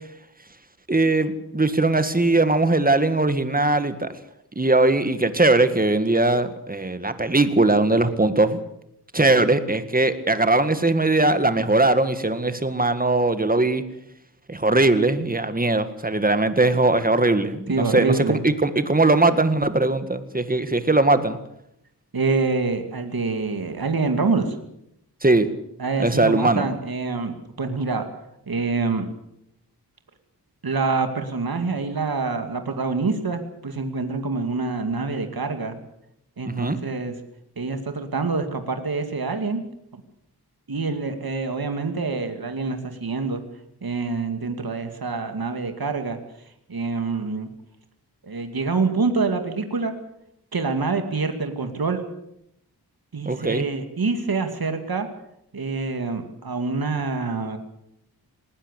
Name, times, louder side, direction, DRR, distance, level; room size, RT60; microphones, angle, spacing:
voice 1, 0.9-4.1 4.6-8.6 9.1-13.8 14.5-21.4 25.2-25.5 26.0-26.7 36.5-36.8 53.3-53.7, right 2 dB, 20° right, 11 dB, 1.9 m, -20 dB
voice 2, 17.7-18.4 22.1-24.6 25.8-28.1 28.5-29.1 30.6-35.8 36.4-37.2 37.6-39.6 39.9-40.0 40.7-43.4 43.8-46.2 46.7-47.5 48.2-49.9 50.5-52.0 53.1-55.1 55.5-57.6, right 4 dB, 60° right, 7 dB, 2.5 m, -26 dB
19.5 x 19.5 x 8.3 m, 0.78 s
wide cardioid pair, 90°, 40 cm